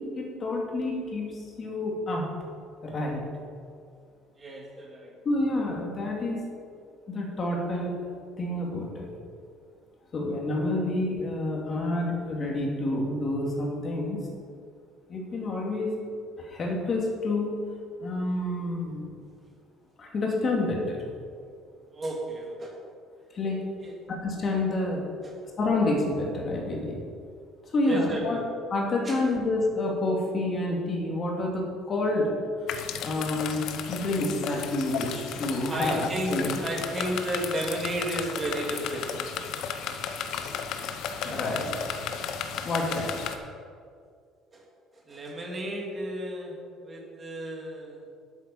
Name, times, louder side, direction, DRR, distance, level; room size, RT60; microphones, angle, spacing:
voice 1, 0.0-2.2 2.8-3.2 5.2-6.4 7.1-8.0 8.4-9.1 10.1-14.3 15.1-15.9 16.4-17.5 18.0-19.1 20.0-21.0 23.3-23.7 24.1-25.0 25.6-27.0 27.6-28.4 28.7-32.3 33.0-36.5 41.2-41.7 42.6-43.2, left 2 dB, 30° left, -1 dB, 2.6 m, -28 dB
voice 2, 4.4-5.1 21.9-22.8 23.8-24.0 25.2-25.3 27.9-28.4 29.0-29.2 35.7-39.3 44.5-48.0, right 1 dB, 25° right, -1 dB, 2.4 m, -33 dB
sound 1, 32.7-43.4, left 7 dB, 60° left, 0.9 m, -34 dB
11.5 x 8.2 x 5.7 m, 2.2 s
cardioid pair, 145°, 0 cm